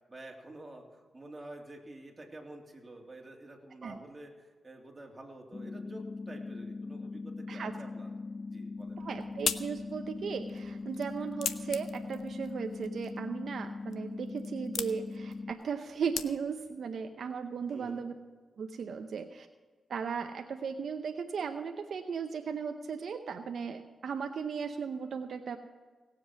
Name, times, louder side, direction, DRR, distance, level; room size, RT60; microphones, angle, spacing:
voice 1, 0.1-8.1 8.4-9.0 17.7-18.1, right 1 dB, 25° right, 0 dB, 3.0 m, -49 dB
sound 1, 5.5-15.5, left 3 dB, 30° left, 0.3 m, -41 dB
sound 2, 8.8-16.8, left 8 dB, 90° left, 0.6 m, -41 dB
voice 2, 9.0-18.1 18.6-19.5 19.9-25.6, right 6 dB, 70° right, 6 dB, 0.7 m, -36 dB
18.0 x 7.7 x 6.1 m, 1.4 s
cardioid pair, 65°, 0 cm